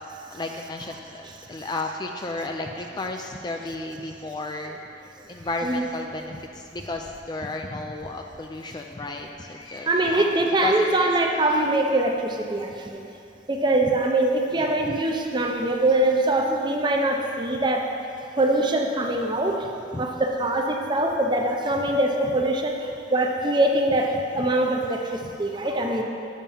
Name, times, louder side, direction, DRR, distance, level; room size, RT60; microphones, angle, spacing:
voice 1, 0.3-4.8 5.3-10.3 10.6-11.1 14.6-14.9 19.9-20.2 25.2-25.3, left 2 dB, 25° left, 3 dB, 0.3 m, -33 dB
voice 2, 9.8-13.0 13.5-17.9 18.4-19.7 20.0-26.0, right 1 dB, 25° right, 2 dB, 0.6 m, -23 dB
7.3 x 5.5 x 7.1 m, 2.6 s
head